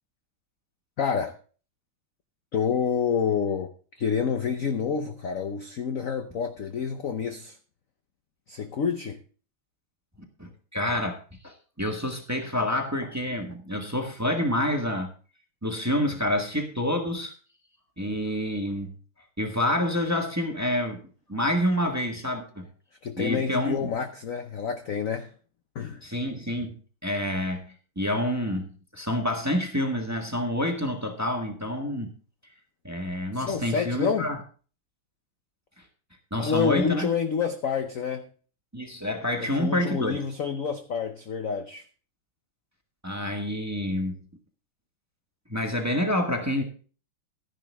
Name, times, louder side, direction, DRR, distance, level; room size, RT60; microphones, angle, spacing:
voice 1, 1.0-1.3 2.5-3.7 4.0-7.6 8.5-9.2 23.0-25.3 25.7-26.0 33.3-34.3 36.4-38.3 39.4-41.8, left 6 dB, 60° left, 0.9 m, -28 dB
voice 2, 10.4-11.2 11.4-15.1 15.6-17.3 18.0-18.9 19.4-21.0 21.3-22.6 23.2-23.9 26.0-26.7 27.0-28.7 28.9-32.1 32.8-34.4 36.3-37.1 38.7-40.2 43.0-44.3 45.5-46.6, left 1 dB, 10° right, 1.3 m, -28 dB
12.5 x 10.5 x 3.5 m
omnidirectional pair, 2.3 m